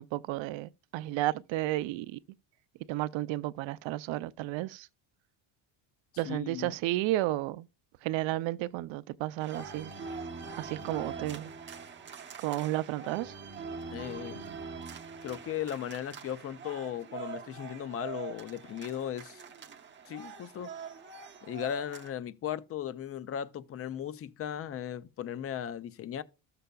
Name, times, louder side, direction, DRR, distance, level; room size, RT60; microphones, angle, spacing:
voice 1, 0.0-2.2 2.9-4.9 6.2-7.7 8.0-9.9 10.6-11.5 12.4-13.3, right 16 dB, 65° right, 0.6 m, -32 dB
voice 2, 6.2-6.8 13.9-14.4 15.2-19.4 20.1-20.7 21.4-26.2, left 10 dB, 30° left, 0.4 m, -37 dB
sound 1, 9.4-22.1, right 5 dB, 25° right, 0.6 m, -43 dB
13.5 x 6.8 x 2.2 m
cardioid pair, 135°, 49 cm